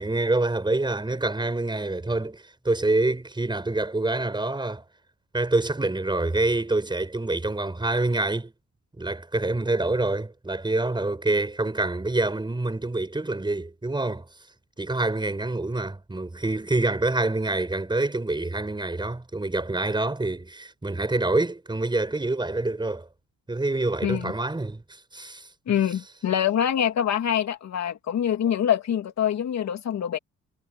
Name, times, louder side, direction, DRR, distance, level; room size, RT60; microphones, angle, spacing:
voice 1, 0.0-4.8 5.3-8.5 9.0-14.3 14.8-23.1 23.5-25.5, right 2 dB, 15° right, 6.1 m, -26 dB
voice 2, 24.0-24.3 25.7-30.2, left 9 dB, 65° left, 2.9 m, -25 dB
cardioid pair, 90°, 30 cm